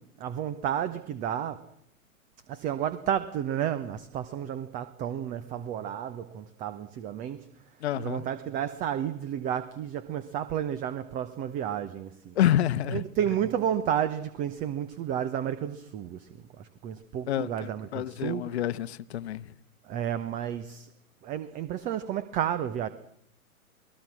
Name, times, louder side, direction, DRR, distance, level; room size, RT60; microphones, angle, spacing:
voice 1, 0.0-1.7 2.5-7.5 8.0-12.4 12.9-16.3 16.6-18.6 19.8-20.9 21.2-22.9, right 10 dB, 20° right, 1.0 m, -31 dB
voice 2, 7.8-8.3 12.4-13.0 17.3-19.5, left 11 dB, 50° left, 1.2 m, -28 dB
28.5 x 20.5 x 6.2 m
figure-of-eight pair, 125°, 43 cm